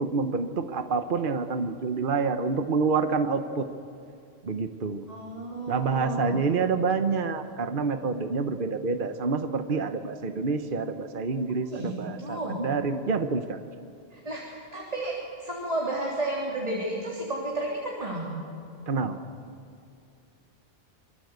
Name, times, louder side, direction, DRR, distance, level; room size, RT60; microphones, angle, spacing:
voice 1, 0.0-3.7 4.4-5.1 5.7-13.6 18.9-19.1, right 4 dB, 55° right, 8 dB, 1.2 m, -27 dB
voice 2, 5.1-6.4 11.7-12.6 14.1-18.3, right 1 dB, 35° right, -3 dB, 3.6 m, -32 dB
26.0 x 23.5 x 8.2 m, 2.5 s
omnidirectional pair, 1.1 m